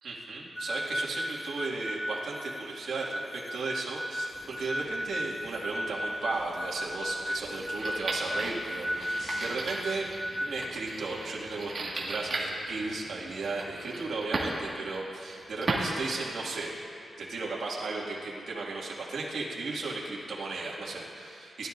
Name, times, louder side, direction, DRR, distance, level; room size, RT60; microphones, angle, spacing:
voice 1, 0.0-10.1 10.4-16.7 17.2-21.7, right 3 dB, 75° right, -5 dB, 2.2 m, -35 dB
sound 1, 0.5-10.6, equal, ahead, 0.4 m, -35 dB
sound 2, 4.3-9.6, left 1 dB, 50° left, 2.6 m, -51 dB
sound 3, 7.7-16.8, right 2 dB, 40° right, 1.9 m, -37 dB
20.0 x 12.5 x 2.7 m, 2.5 s
wide cardioid pair, 165°, 0 cm